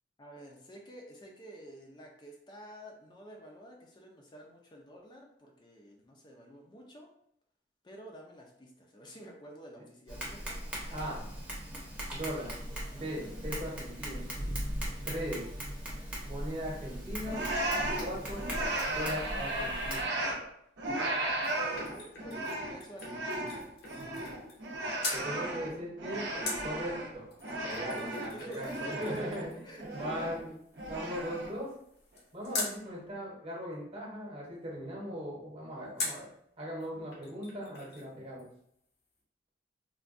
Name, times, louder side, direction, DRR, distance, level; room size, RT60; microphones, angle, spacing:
voice 1, 0.2-7.1 7.8-11.1 21.5-23.6 27.9-30.3, equal, 25° left, 1 dB, 0.4 m, -50 dB
Tap, 10.1-20.0, equal, 5° right, 0.7 m, -39 dB
voice 2, 10.9-11.2 12.1-12.5 12.9-14.3 15.0-15.4 16.2-17.4 18.0-18.4 18.9-20.1 25.1-29.5 29.9-30.5 30.9-31.7 32.3-36.3 36.6-38.4, equal, 35° right, -4 dB, 0.9 m, -39 dB
sound 1, 17.3-20.5 20.8-27.1 27.4-29.5 29.8-30.4 30.8-31.6, right 1 dB, 70° right, 0.6 m, -35 dB
sound 2, 21.1-24.7 25.0-25.3 26.5-32.8 36.0-36.3 36.8-36.9 37.1-38.1 38.4-38.5, left 3 dB, 60° left, 0.7 m, -42 dB
3.4 x 2.2 x 2.5 m, 0.70 s
head